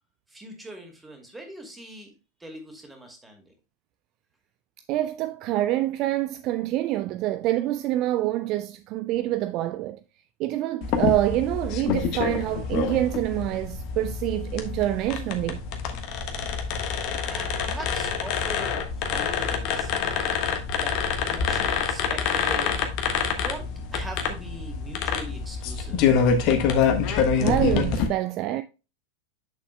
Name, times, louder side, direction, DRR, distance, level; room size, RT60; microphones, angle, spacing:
voice 1, 0.3-2.1 2.4-3.5 17.2-20.4 20.8-22.8 23.3-26.2, right 1 dB, 10° right, 2.4 m, -41 dB
voice 2, 4.9-10.0 10.4-15.6 27.4-28.6, right 15 dB, 40° right, 0.4 m, -26 dB
sound 1, 10.8-28.1, left 6 dB, 40° left, 1.3 m, -26 dB
8.2 x 6.9 x 2.2 m
figure-of-eight pair, 90°, 0 cm